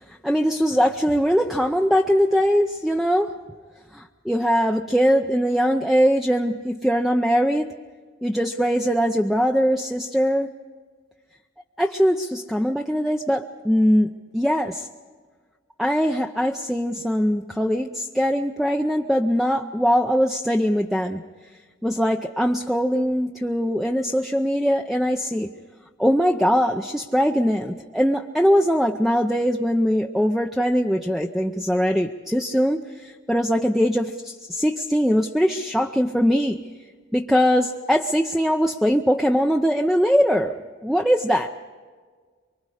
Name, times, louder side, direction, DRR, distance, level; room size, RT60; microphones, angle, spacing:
voice 1, 0.1-3.3 3.9-7.7 8.2-10.5 11.8-14.9 15.8-21.2 21.8-25.5 26.0-36.6 37.1-40.5 40.8-41.5, equal, ahead, 3 dB, 0.6 m, -21 dB
24.5 x 24.0 x 4.9 m, 1.5 s
head